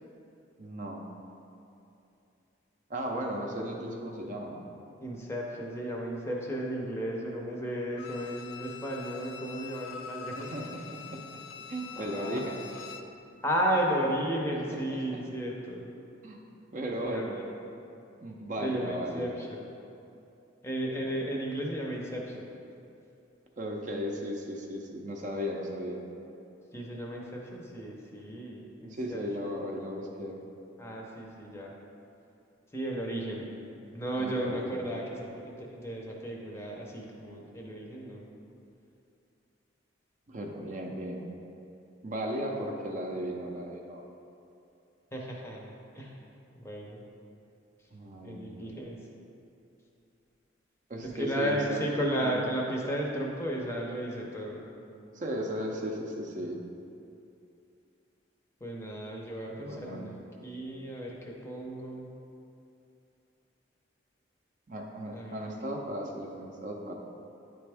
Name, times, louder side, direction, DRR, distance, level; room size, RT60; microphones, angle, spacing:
voice 1, 0.6-1.1 2.9-4.6 10.4-11.4 11.7-12.7 14.7-15.0 16.2-16.4 16.7-17.4 18.2-19.3 21.0-21.1 23.6-26.0 28.9-30.4 34.1-34.7 40.3-41.2 42.0-44.0 47.9-48.4 50.9-52.4 55.1-56.6 59.5-60.1 64.7-66.9, equal, 40° right, 1 dB, 0.5 m, -36 dB
voice 2, 5.0-10.5 12.0-12.4 13.4-15.9 17.0-17.4 18.6-19.6 20.6-22.5 26.7-29.2 30.8-31.7 32.7-33.5 33.9-38.3 45.1-46.2 46.5-47.0 48.2-49.0 51.0-54.6 58.6-62.1 65.1-65.4, right 1 dB, 15° left, -2 dB, 0.6 m, -34 dB
Bowed string instrument, 8.0-13.2 13.5-13.6, left 7 dB, 80° left, 0.4 m, -44 dB
9.7 x 3.4 x 3.4 m, 2.7 s
head